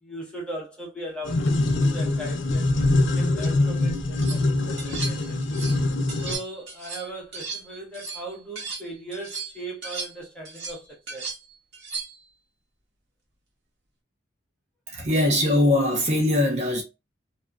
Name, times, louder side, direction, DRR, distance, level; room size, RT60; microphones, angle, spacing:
voice 1, 0.0-5.4 6.2-11.3, right 1 dB, 5° left, 0.8 m, -38 dB
sound 1, 1.3-6.4, left 2 dB, 85° left, 0.5 m, -23 dB
sound 2, 3.9-4.4 4.8-5.8 6.1-8.9 9.1-12.3, right 4 dB, 60° right, 0.9 m, -36 dB
voice 2, 14.9-16.8, left 1 dB, 35° right, 0.5 m, -21 dB
2.8 x 2.3 x 2.3 m
head